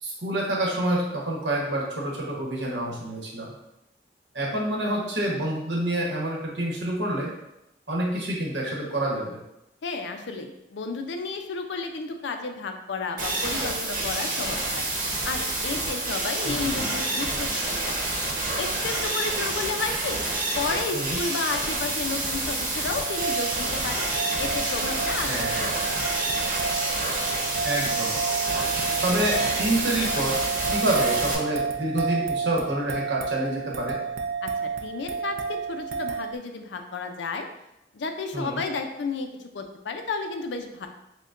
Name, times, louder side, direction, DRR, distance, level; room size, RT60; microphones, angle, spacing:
voice 1, 0.0-3.5 4.3-7.3 7.9-9.4 16.4-16.8 20.9-21.2 25.2-25.6 27.6-28.1 29.0-30.4 30.7-34.0 38.3-38.6, right 1 dB, 80° right, -3 dB, 1.0 m, -27 dB
voice 2, 9.8-14.8 15.2-18.0 18.6-20.2 20.5-24.1 24.4-25.9 34.4-37.5 37.9-40.9, left 4 dB, 80° left, 6 dB, 0.4 m, -32 dB
sound 1, 13.2-31.3, right 2 dB, 45° right, 0.9 m, -28 dB
sound 2, 23.0-36.4, right 5 dB, 65° right, 0.4 m, -31 dB
6.4 x 2.2 x 2.5 m, 0.88 s
head